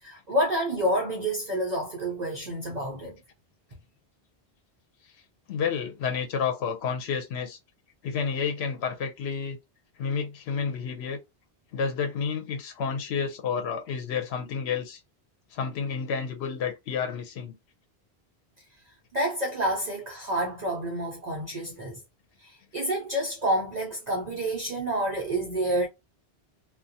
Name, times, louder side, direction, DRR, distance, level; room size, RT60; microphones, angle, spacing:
voice 1, 0.0-3.2 19.1-22.0 22.4-25.9, right 1 dB, 45° right, 0.7 m, -28 dB
voice 2, 5.5-7.6 8.0-9.6 10.0-11.2 11.7-15.0 15.5-17.6, left 6 dB, 80° left, 0.9 m, -30 dB
2.4 x 2.2 x 2.6 m
omnidirectional pair, 1.1 m